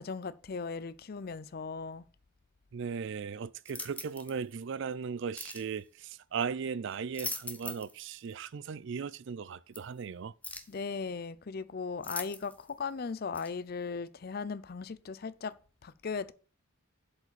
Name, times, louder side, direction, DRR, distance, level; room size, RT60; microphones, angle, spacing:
voice 1, 0.0-2.0 10.7-15.6 15.8-16.3, left 5 dB, 45° left, 0.5 m, -37 dB
voice 2, 2.7-10.3, right 6 dB, 55° right, 0.4 m, -37 dB
sound 1, 3.6-4.4 5.4-5.7 6.9-8.0 8.3-8.4 9.7-9.8 10.4-10.8 12.0-12.7 13.3-13.5, left 2 dB, 5° left, 0.7 m, -41 dB
7.7 x 5.0 x 6.9 m
head